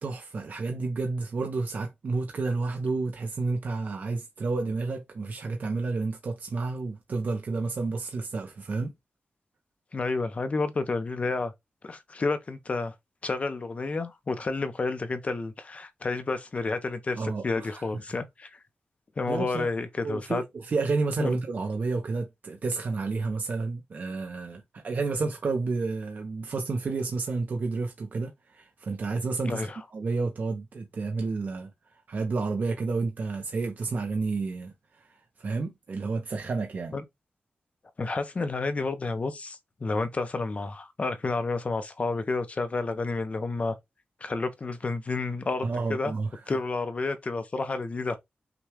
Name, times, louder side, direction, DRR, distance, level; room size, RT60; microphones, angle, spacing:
voice 1, 0.0-8.9 17.1-17.9 19.3-19.7 20.0-36.9 45.6-46.6, right 3 dB, 55° right, 0.8 m, -31 dB
voice 2, 9.9-11.5 11.8-12.9 13.2-18.6 19.2-20.4 21.2-21.4 29.4-29.8 36.9-37.0 38.0-43.8 44.2-46.1 46.5-48.2, left 3 dB, 40° left, 0.8 m, -30 dB
5.9 x 2.4 x 3.3 m
wide cardioid pair, 130°, 4 cm